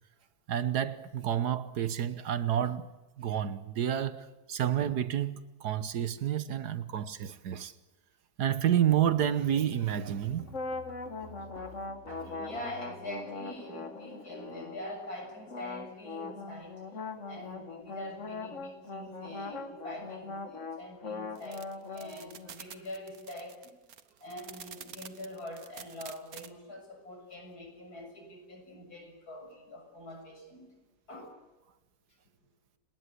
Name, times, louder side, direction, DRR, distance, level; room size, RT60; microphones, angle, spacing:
voice 1, 0.5-2.9 3.2-7.7 8.4-10.4, right 10 dB, 80° right, 1.7 m, -29 dB
sound 1, 8.6-14.8 15.1-16.1 16.4-16.7 17.1-17.3, right 2 dB, 40° right, 2.6 m, -52 dB
sound 2, 10.5-14.9 15.5-22.7, left 4 dB, 50° left, 2.0 m, -41 dB
voice 2, 12.1-16.8 17.3-23.8 24.2-30.7 31.1-31.3, left 1 dB, 70° left, 7.3 m, -44 dB
sound 3, 21.4-26.5, right 7 dB, 65° right, 1.7 m, -48 dB
30.0 x 19.5 x 8.1 m
omnidirectional pair, 1.7 m